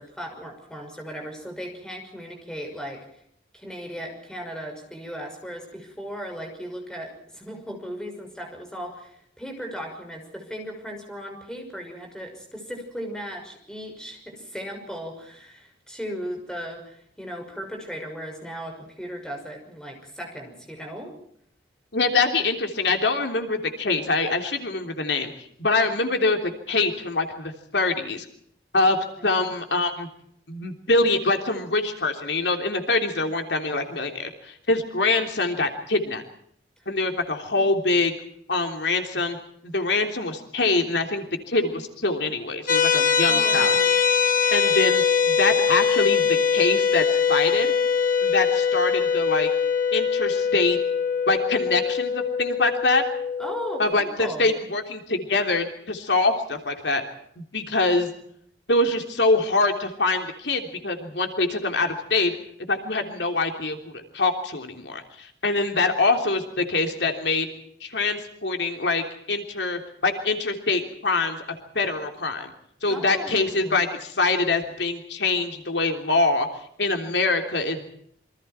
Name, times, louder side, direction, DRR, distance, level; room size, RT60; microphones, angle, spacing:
voice 1, 0.0-3.2 3.5-21.2 29.2-29.4 37.6-37.7 43.2-44.0 53.4-54.5 66.6-66.7 67.0-67.1 72.9-73.8, equal, 5° left, 3 dB, 6.1 m, -37 dB
voice 2, 21.9-28.2 28.7-29.0 29.2-30.1 30.5-36.2 36.9-38.1 38.5-39.4 39.6-43.7 44.5-47.7 48.2-49.5 49.9-50.8 51.3-53.1 53.8-57.0 57.4-58.1 58.7-62.3 62.7-67.5 67.8-72.5 72.8-76.5 76.8-77.9, left 3 dB, 80° left, 5 dB, 3.3 m, -24 dB
sound 1, 42.7-53.8, left 6 dB, 50° left, 2.7 m, -22 dB
27.5 x 25.0 x 4.5 m, 0.69 s
head